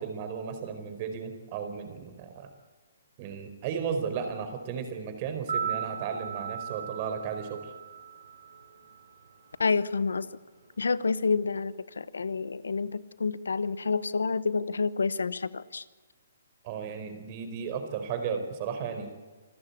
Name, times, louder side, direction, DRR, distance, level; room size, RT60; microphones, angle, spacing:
voice 1, 0.0-2.5 3.2-7.7 16.6-19.1, right 6 dB, 40° right, 7 dB, 4.6 m, -34 dB
sound 1, 5.3-9.5 9.8-9.9, right 8 dB, 80° right, 7.9 m, -37 dB
voice 2, 9.6-10.3 10.8-15.8, left 4 dB, 85° left, 17 dB, 1.0 m, -28 dB
27.0 x 14.5 x 8.5 m, 1.3 s
hypercardioid pair, 145°, 0 cm